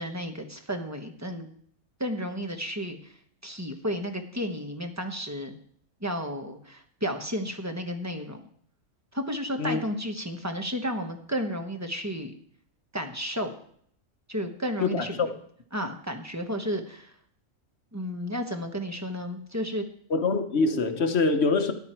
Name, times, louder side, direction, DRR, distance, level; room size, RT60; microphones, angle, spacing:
voice 1, 0.0-1.5 2.0-3.0 3.4-5.6 6.0-8.4 9.1-12.3 12.9-13.5 14.3-15.2 15.7-17.1 17.9-19.8, equal, 15° right, 1.1 m, -32 dB
voice 2, 14.8-15.3 20.1-21.7, left 4 dB, 55° left, 1.1 m, -24 dB
13.0 x 10.5 x 4.5 m
omnidirectional pair, 1.4 m